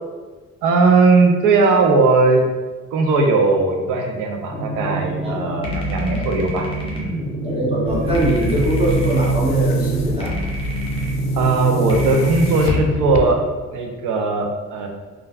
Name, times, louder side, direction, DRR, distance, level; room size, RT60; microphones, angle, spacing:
voice 1, 0.6-2.5 2.9-6.7 7.0-7.2 11.4-13.4 13.7-14.9, right 3 dB, 90° right, 3 dB, 0.5 m, -18 dB
sound 1, 4.5-13.3, equal, 20° left, 0.8 m, -27 dB
voice 2, 7.4-10.4, right 1 dB, 20° right, -6 dB, 0.8 m, -22 dB
Boom, 7.9-13.7, right 2 dB, 65° left, 0.4 m, -24 dB
3.1 x 2.3 x 2.3 m, 1.3 s
cardioid pair, 90°, 30 cm